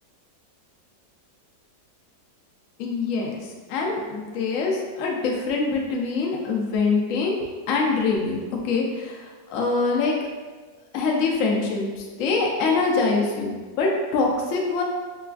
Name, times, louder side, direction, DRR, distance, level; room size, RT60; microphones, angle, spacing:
voice 1, 2.8-7.4 7.7-8.4 8.6-10.2 10.9-14.8, left 4 dB, 75° left, -1 dB, 0.7 m, -24 dB
4.2 x 2.3 x 2.3 m, 1.4 s
omnidirectional pair, 2.0 m